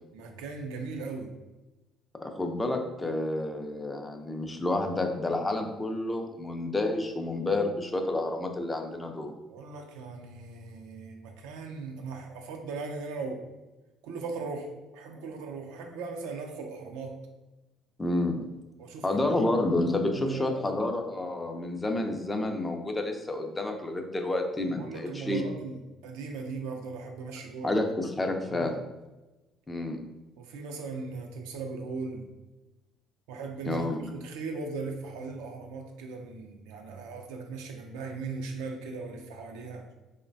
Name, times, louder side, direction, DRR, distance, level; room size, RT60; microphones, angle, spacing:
voice 1, 0.1-1.3 9.5-13.4 14.0-17.2 18.8-19.5 20.1-20.6 24.7-27.8 28.2-28.7 30.4-32.3 33.3-39.9, right 4 dB, 90° right, 3 dB, 0.4 m, -38 dB
voice 2, 2.2-9.3 18.0-18.4 19.0-25.4 27.6-28.8 29.7-30.0 33.7-34.0, left 2 dB, 20° left, 4 dB, 0.4 m, -29 dB
3.1 x 2.1 x 2.5 m, 1.1 s
supercardioid pair, 80°, 0 cm